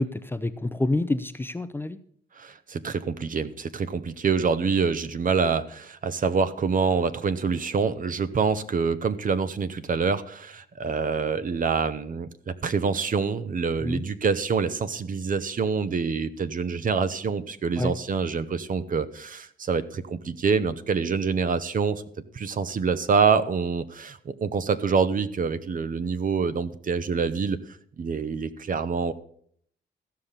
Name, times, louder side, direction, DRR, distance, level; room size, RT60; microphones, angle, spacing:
voice 1, 0.0-2.0 13.8-14.0 17.8-17.9, left 2 dB, 10° left, 12 dB, 0.6 m, -27 dB
voice 2, 2.4-22.0 22.3-27.6 28.0-29.1, right 5 dB, 45° right, 13 dB, 0.9 m, -26 dB
15.0 x 5.8 x 6.7 m, 0.62 s
cardioid pair, 90°, 20 cm